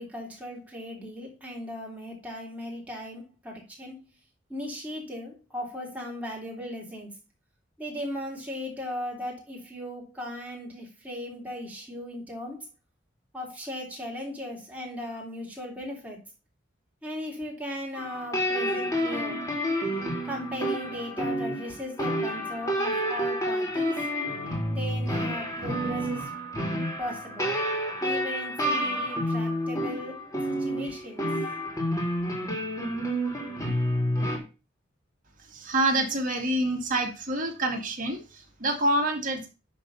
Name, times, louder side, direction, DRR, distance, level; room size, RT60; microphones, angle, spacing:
voice 1, 0.0-4.0 4.5-7.1 7.8-12.7 13.3-16.2 17.0-19.4 20.2-24.0 24.7-26.3 27.0-27.5 28.0-31.2, left 1 dB, 10° right, -2 dB, 3.2 m, -37 dB
sound 1, 17.9-34.4, equal, 15° left, 2.7 m, -29 dB
voice 2, 35.5-39.5, right 1 dB, 45° right, 2 dB, 2.1 m, -27 dB
10.5 x 4.0 x 5.5 m, 0.29 s
head